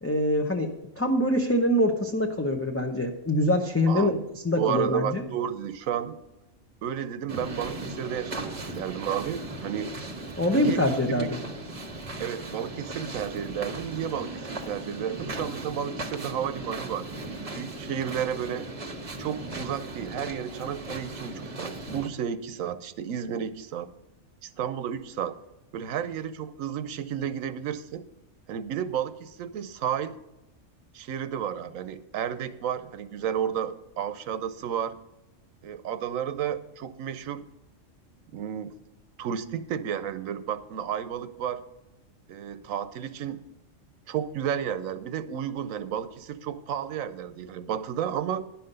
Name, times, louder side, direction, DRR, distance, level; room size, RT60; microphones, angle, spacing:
voice 1, 0.0-4.2 4.4-5.2 10.4-11.4, left 1 dB, 15° left, 1 dB, 0.5 m, -24 dB
voice 2, 3.9-4.2 4.6-6.2 6.8-10.0 10.5-11.3 12.2-18.7 19.2-23.9 24.4-25.4 25.7-28.0 28.5-30.2 30.9-35.0 35.6-37.4 38.3-38.7 39.2-41.6 42.3-43.4 44.1-48.5, right 9 dB, 85° right, 13 dB, 1.1 m, -32 dB
sound 1, 7.3-22.1, right 2 dB, 30° right, 1.0 m, -37 dB
11.0 x 5.7 x 6.6 m, 0.95 s
omnidirectional pair, 1.4 m